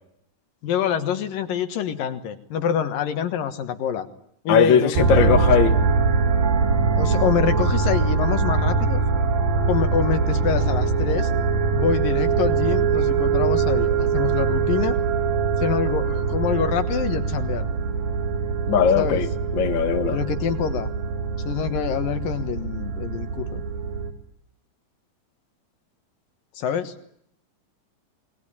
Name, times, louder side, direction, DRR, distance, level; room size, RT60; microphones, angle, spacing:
voice 1, 0.6-4.1 4.4-5.7 7.0-9.0 9.7-11.3 11.7-15.0 15.6-17.7 19.0-19.2 20.1-20.9 21.4-23.6 26.5-26.9, left 8 dB, 70° left, 8 dB, 3.1 m, -26 dB
voice 2, 4.5-5.7 18.7-19.3 19.5-20.2, left 7 dB, 40° left, 6 dB, 2.0 m, -19 dB
sound 1, 5.0-24.1, right 5 dB, 75° right, 4.2 m, -23 dB
28.0 x 20.5 x 9.9 m, 0.74 s
omnidirectional pair, 4.1 m